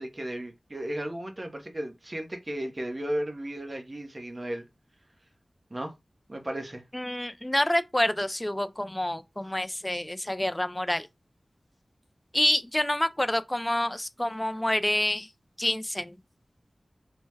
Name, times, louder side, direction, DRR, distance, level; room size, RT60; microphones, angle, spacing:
voice 1, 0.0-4.7 5.7-5.9 6.3-6.8, right 1 dB, 40° right, 0.8 m, -34 dB
voice 2, 6.9-11.1 12.3-15.3 15.6-16.1, left 1 dB, 20° left, 0.3 m, -27 dB
3.3 x 2.1 x 3.2 m
wide cardioid pair, 45°, 0 cm